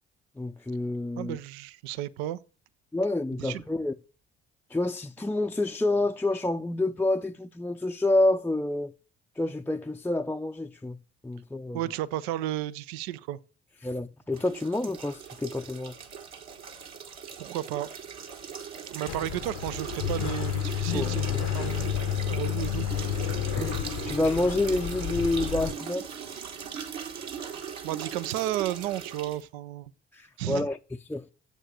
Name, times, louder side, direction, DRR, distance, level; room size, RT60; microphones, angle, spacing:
voice 1, 0.4-1.4 2.9-3.9 4.7-8.9 9.4-11.0 11.2-11.8 13.8-15.9 20.9-21.4 23.5-26.1 30.1-30.8 31.1-31.2, left 2 dB, 5° left, 0.4 m, -28 dB
voice 2, 1.2-2.4 3.4-3.6 11.7-13.4 17.4-17.9 18.9-22.9 27.8-29.9 30.4-30.7, right 13 dB, 80° right, 0.5 m, -33 dB
sound 1, 14.3-29.4, right 7 dB, 60° right, 1.7 m, -39 dB
sound 2, 19.1-25.7, left 12 dB, 70° left, 0.8 m, -31 dB
7.8 x 7.3 x 6.6 m
hypercardioid pair, 50°, 31 cm